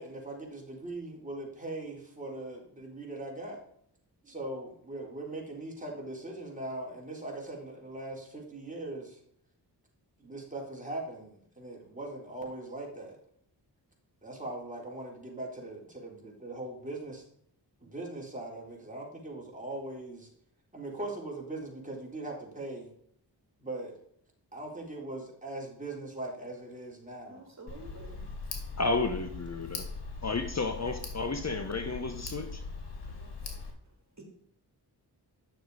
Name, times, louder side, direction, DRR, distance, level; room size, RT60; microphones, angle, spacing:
voice 1, 0.0-3.6 4.2-9.2 10.2-13.2 14.2-17.2 17.8-20.3 20.7-22.9 23.6-24.0 24.5-27.5, right 2 dB, 20° right, -2 dB, 4.1 m, -40 dB
voice 2, 27.3-28.2 34.2-34.3, right 2 dB, 40° right, 2 dB, 3.3 m, -48 dB
Tick, 27.7-33.7, left 4 dB, 70° left, 2.4 m, -41 dB
voice 3, 28.8-29.8 30.2-32.6, left 3 dB, 40° left, 7 dB, 1.1 m, -32 dB
10.5 x 6.5 x 5.0 m, 0.66 s
cardioid pair, 55°, 41 cm